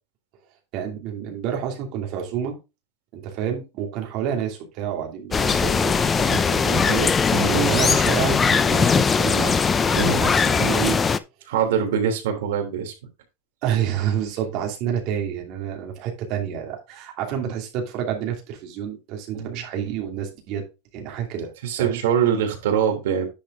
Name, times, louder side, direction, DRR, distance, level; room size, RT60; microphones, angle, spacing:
voice 1, 0.7-2.6 3.1-7.1 7.6-11.0 13.6-20.6 20.9-22.0, right 9 dB, 40° right, 2.6 m, -29 dB
sound 1, 5.3-11.2, left 5 dB, 15° left, 0.4 m, -20 dB
voice 2, 7.3-7.7 10.0-10.2 11.5-12.9 17.4-17.6 19.3-19.6 21.6-23.3, right 8 dB, 80° right, 3.1 m, -23 dB
10.0 x 5.0 x 3.8 m
supercardioid pair, 170°, 0 cm